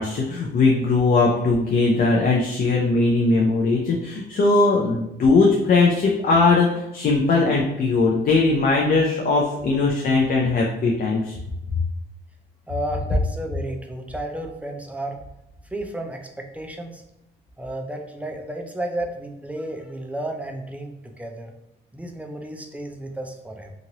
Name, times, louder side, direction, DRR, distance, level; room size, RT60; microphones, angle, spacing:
voice 1, 0.0-11.4, left 3 dB, 50° left, -1 dB, 0.5 m, -19 dB
voice 2, 12.7-15.2 15.7-17.0 17.6-21.5 21.9-23.7, right 1 dB, 5° right, 3 dB, 0.4 m, -32 dB
2.9 x 2.5 x 2.8 m, 0.89 s
cardioid pair, 90°, 20 cm